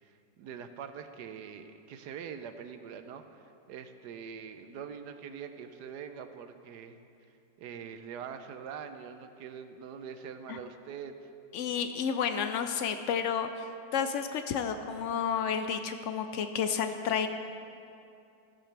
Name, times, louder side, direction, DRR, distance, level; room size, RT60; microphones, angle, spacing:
voice 1, 0.0-7.0 7.6-11.3, right 7 dB, 75° right, 8 dB, 1.2 m, -44 dB
voice 2, 11.5-13.5 13.9-17.3, left 7 dB, 85° left, 8 dB, 0.6 m, -31 dB
15.0 x 13.5 x 3.3 m, 2.6 s
omnidirectional pair, 1.9 m